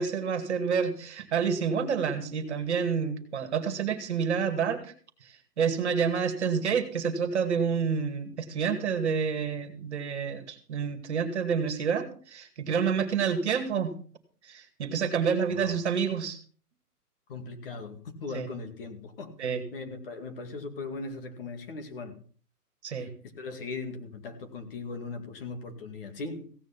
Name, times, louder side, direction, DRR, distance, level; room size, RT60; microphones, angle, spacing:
voice 1, 0.0-4.9 5.6-13.9 14.5-16.4 18.3-18.5 19.4-19.6 22.8-23.1, right 6 dB, 45° right, 9 dB, 2.3 m, -28 dB
voice 2, 15.5-15.8 17.3-22.2 22.9-26.5, left 3 dB, 35° left, 7 dB, 2.2 m, -39 dB
16.5 x 9.2 x 5.8 m, 0.42 s
hypercardioid pair, 165°, 47 cm